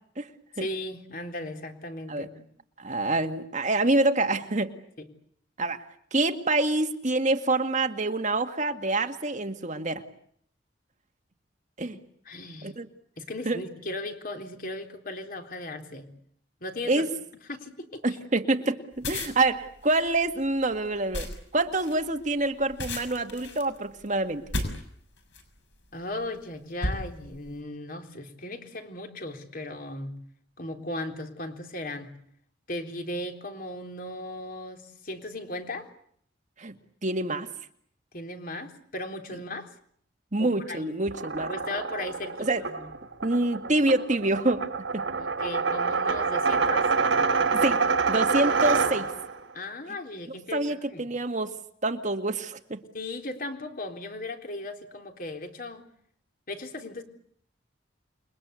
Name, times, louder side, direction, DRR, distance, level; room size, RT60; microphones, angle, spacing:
voice 1, 0.6-2.3 5.0-5.1 12.3-12.7 13.2-16.1 16.6-17.0 17.5-18.0 25.9-30.2 30.6-32.1 32.7-35.9 38.1-39.7 40.4-40.9 41.5-42.9 45.2-46.9 47.9-48.0 49.5-51.0 52.9-55.8 56.5-57.0, left 1 dB, 50° left, 5 dB, 3.8 m, -37 dB
voice 2, 2.8-4.7 5.6-5.8 6.1-10.0 11.8-12.0 12.6-12.9 13.5-13.6 16.9-17.1 18.0-24.4 36.6-36.8 37.0-37.5 40.3-41.5 42.4-42.6 43.2-44.6 44.9-45.1 47.5-47.8 48.1-49.1 50.5-51.5 51.8-52.8, right 2 dB, 40° right, 7 dB, 2.0 m, -26 dB
sound 1, 18.9-25.6 26.2-26.4 26.8-27.5, left 1 dB, 70° left, 6.1 m, -35 dB
sound 2, 41.1-49.4, right 4 dB, 75° right, 1.6 m, -26 dB
29.0 x 22.5 x 8.3 m, 0.65 s
head